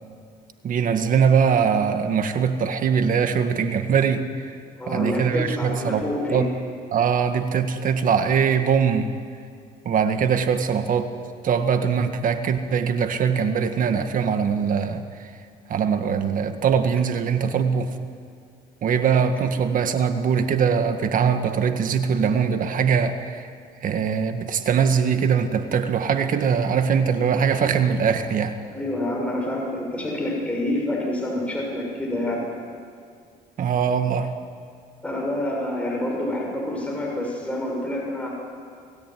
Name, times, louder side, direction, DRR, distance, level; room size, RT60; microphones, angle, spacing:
voice 1, 0.6-4.2 4.9-6.0 6.3-6.5 6.9-9.1 9.9-11.1 11.4-15.0 15.7-17.9 18.8-23.5 23.8-28.6 33.6-34.3, right 6 dB, 55° right, 7 dB, 1.8 m, -22 dB
voice 2, 4.8-6.5 28.7-32.4 35.0-38.3, left 1 dB, 10° left, -2 dB, 7.0 m, -27 dB
29.0 x 17.5 x 9.5 m, 2.2 s
cardioid pair, 110°, 17 cm